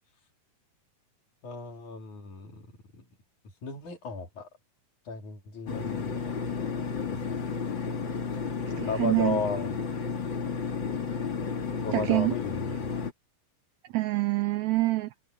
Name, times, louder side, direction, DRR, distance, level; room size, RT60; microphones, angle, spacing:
voice 1, 1.4-3.1 3.6-4.5 5.1-6.3 6.6-7.5 8.8-9.7 11.8-12.9, left 4 dB, 65° left, 5.2 m, -35 dB
sound 1, 5.7-13.1, left 5 dB, 40° left, 2.7 m, -32 dB
voice 2, 8.8-9.4 11.9-12.3 13.9-15.1, right 18 dB, 80° right, 1.6 m, -26 dB
omnidirectional pair, 3.7 m